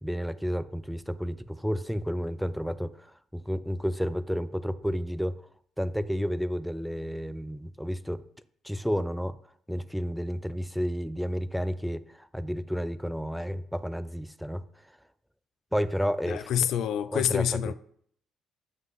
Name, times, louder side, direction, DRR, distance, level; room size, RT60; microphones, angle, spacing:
voice 1, 0.0-5.4 5.8-8.3 8.6-9.4 9.7-15.0 15.7-16.5 17.1-17.7, equal, ahead, 0.3 m, -31 dB
voice 2, 16.3-17.7, left 10 dB, 70° left, 0.4 m, -27 dB
7.5 x 5.4 x 4.0 m
cardioid pair, 125°, 0 cm